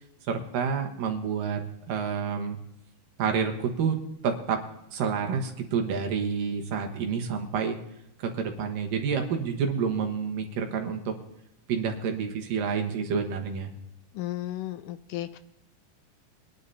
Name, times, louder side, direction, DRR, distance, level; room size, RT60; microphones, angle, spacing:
voice 1, 0.3-1.6 1.9-2.6 3.2-4.0 4.2-4.6 4.9-7.8 8.2-11.1 11.7-13.7, right 6 dB, 80° right, 4 dB, 3.0 m, -28 dB
voice 2, 14.2-15.4, left 14 dB, 80° left, 10 dB, 2.0 m, -34 dB
23.0 x 10.5 x 2.8 m, 0.82 s
omnidirectional pair, 4.0 m